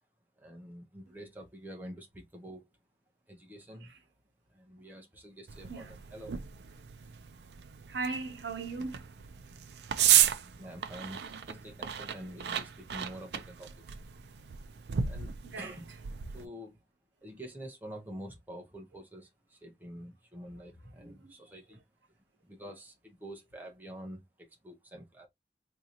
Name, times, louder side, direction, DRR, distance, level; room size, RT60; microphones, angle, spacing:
voice 1, 0.4-2.6 3.3-3.9 4.5-6.4 10.5-13.8 15.0-15.9 16.3-16.8 17.2-21.8 22.4-25.3, equal, 10° right, 0.6 m, -47 dB
sound 1, 5.5-16.5, right 10 dB, 70° right, 0.4 m, -33 dB
voice 2, 7.9-9.0 10.0-10.4 15.4-15.8 21.0-21.3, right 4 dB, 90° right, 0.9 m, -39 dB
3.7 x 2.7 x 2.8 m
head